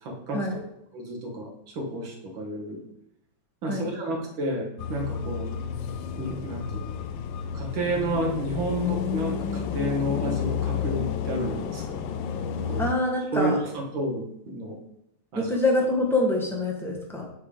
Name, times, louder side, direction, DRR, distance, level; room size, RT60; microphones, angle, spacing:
voice 1, 0.0-0.6 0.9-2.8 3.6-5.5 6.2-7.0 7.5-12.0 12.7-12.9 13.3-14.8 15.3-15.5, right 1 dB, 90° right, 0 dB, 2.1 m, -31 dB
sound 1, 4.8-12.9, left 7 dB, 80° left, 1.3 m, -31 dB
voice 2, 12.8-13.6 15.3-17.2, left 2 dB, ahead, -1 dB, 0.8 m, -25 dB
8.7 x 3.5 x 4.9 m, 0.80 s
omnidirectional pair, 2.1 m